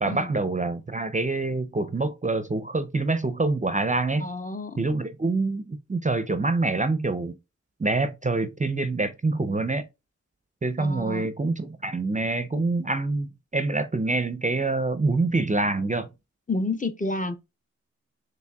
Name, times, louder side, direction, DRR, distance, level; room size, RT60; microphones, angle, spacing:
voice 1, 0.0-4.3 4.8-7.4 7.8-9.9 10.6-16.1, right 3 dB, 25° right, 0.5 m, -26 dB
voice 2, 4.2-4.8 10.8-11.3 16.5-17.4, left 2 dB, 25° left, 0.6 m, -30 dB
4.5 x 3.2 x 2.2 m
wide cardioid pair, 45°, 30 cm